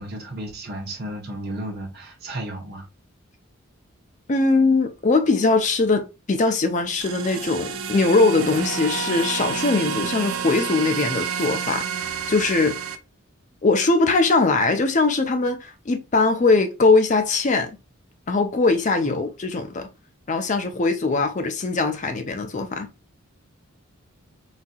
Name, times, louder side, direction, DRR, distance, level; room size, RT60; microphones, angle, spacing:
voice 1, 0.0-2.8, right 1 dB, 45° right, 0.9 m, -33 dB
voice 2, 4.3-11.9 12.3-12.8 13.6-17.7 18.3-19.9 20.3-22.9, left 3 dB, 35° left, 0.4 m, -21 dB
sound 1, 7.0-13.0, right 7 dB, 70° right, 0.4 m, -29 dB
4.0 x 2.8 x 2.3 m
head